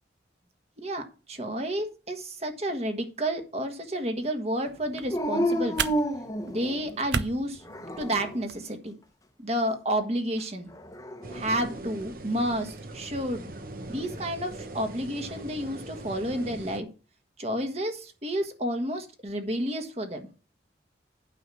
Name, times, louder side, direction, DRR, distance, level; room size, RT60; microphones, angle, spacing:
voice 1, 0.8-5.9 6.5-7.6 8.0-8.9 9.4-10.7 11.3-13.5 13.9-16.9 17.4-20.3, right 1 dB, 35° right, 5 dB, 1.5 m, -30 dB
sound 1, 4.7-8.6, right 6 dB, 65° right, 0.7 m, -36 dB
Dog, 5.1-7.0 7.7-8.5 10.7-11.6, equal, 20° left, 1.0 m, -30 dB
sound 2, 11.2-16.8, right 1 dB, 50° right, 1.0 m, -41 dB
9.0 x 5.7 x 6.1 m, 0.34 s
head